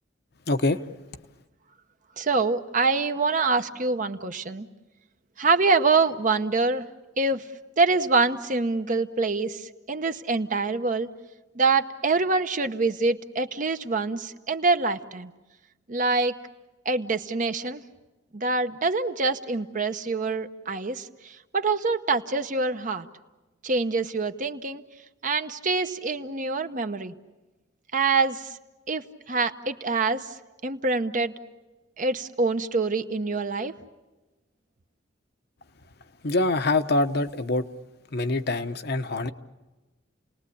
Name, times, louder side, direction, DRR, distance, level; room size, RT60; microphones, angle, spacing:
voice 1, 0.5-0.8 36.2-37.6 38.1-39.3, left 2 dB, 60° left, 8 dB, 1.0 m, -24 dB
voice 2, 2.2-4.7 5.4-6.9 7.2-7.5 7.8-11.1 11.5-15.3 15.9-16.3 16.8-17.8 18.3-23.1 23.6-24.8 25.2-27.1 27.9-28.5 28.9-30.3 30.6-31.3 32.0-33.8, right 3 dB, 45° right, 8 dB, 0.9 m, -25 dB
30.0 x 19.5 x 8.5 m, 1.1 s
head